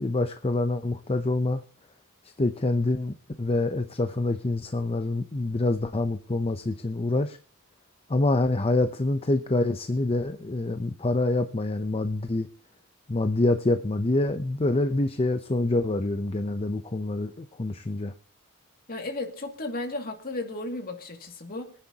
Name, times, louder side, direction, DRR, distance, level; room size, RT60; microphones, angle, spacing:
voice 1, 0.0-1.6 2.4-7.4 8.1-12.5 13.1-18.1, left 2 dB, 25° left, 8 dB, 0.7 m, -26 dB
voice 2, 18.9-21.7, left 2 dB, 40° left, 3 dB, 2.4 m, -34 dB
24.5 x 10.0 x 2.9 m, 0.41 s
head